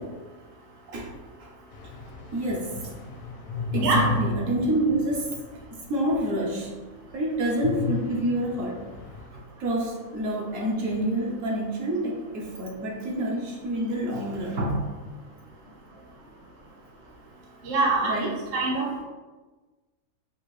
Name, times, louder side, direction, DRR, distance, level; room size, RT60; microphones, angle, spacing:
voice 1, 0.9-1.5 2.3-2.9 3.7-5.3 5.9-6.7 7.1-8.9 9.3-14.9 18.0-18.5, right 1 dB, 70° right, -3 dB, 1.2 m, -28 dB
sound 1, 1.7-6.0 6.4-6.5 7.6-9.3, left 3 dB, 85° left, 1.1 m, -33 dB
voice 2, 17.6-19.0, right 3 dB, 50° right, -2 dB, 1.0 m, -25 dB
5.6 x 2.6 x 3.1 m, 1.3 s
omnidirectional pair, 1.4 m